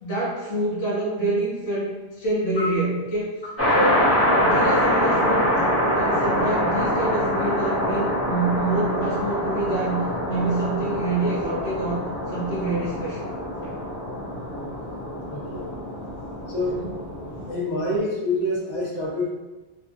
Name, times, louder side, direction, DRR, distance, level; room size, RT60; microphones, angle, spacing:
voice 1, 0.0-3.3 3.7-4.0 4.4-13.3 13.6-13.8 16.6-16.9, right 2 dB, 70° left, -6 dB, 0.9 m, -27 dB
sound 1, 3.6-17.5, equal, 20° left, 0.5 m, -25 dB
voice 2, 15.3-15.7 16.5-16.8 17.3-19.3, left 1 dB, 45° left, -7 dB, 0.9 m, -27 dB
2.6 x 2.4 x 2.5 m, 1.1 s
omnidirectional pair, 1.1 m